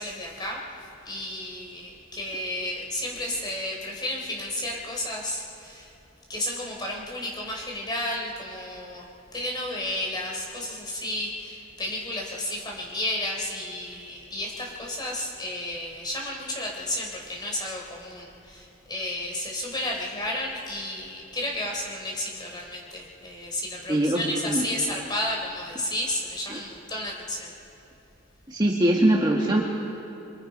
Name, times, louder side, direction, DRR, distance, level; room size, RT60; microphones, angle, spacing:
voice 1, 0.0-6.0 6.3-27.5, left 1 dB, 20° left, 0 dB, 3.7 m, -32 dB
voice 2, 23.9-24.6 26.5-26.6 28.5-29.6, right 1 dB, 20° right, -2 dB, 1.7 m, -22 dB
28.0 x 23.5 x 5.3 m, 2.8 s
head